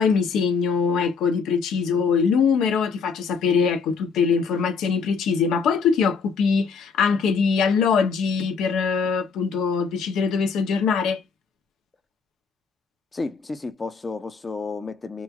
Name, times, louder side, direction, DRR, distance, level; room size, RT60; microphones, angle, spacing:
voice 1, 0.0-11.2, left 6 dB, 85° left, 0.7 m, -22 dB
voice 2, 13.1-15.2, left 3 dB, 25° left, 0.6 m, -32 dB
3.0 x 2.3 x 2.3 m
cardioid pair, 90°, 0 cm